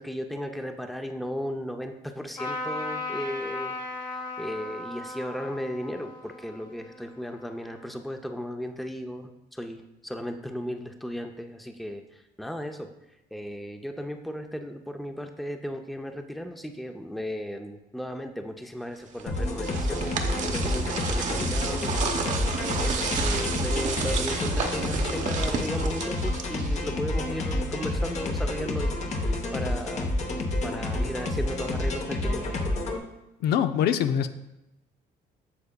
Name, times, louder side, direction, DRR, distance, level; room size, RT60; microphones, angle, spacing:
voice 1, 0.0-12.9 13.3-30.1 30.6-32.6, equal, ahead, 5 dB, 0.5 m, -36 dB
Trumpet, 2.4-7.9, left 2 dB, 25° left, 1.3 m, -37 dB
sound 1, 19.2-27.0, right 5 dB, 45° right, 0.9 m, -31 dB
sound 2, 19.3-33.0, left 2 dB, 40° left, 1.0 m, -29 dB
voice 2, 33.4-34.3, left 9 dB, 75° left, 10 dB, 0.5 m, -23 dB
8.5 x 6.8 x 2.3 m, 0.91 s
cardioid pair, 110°, 17 cm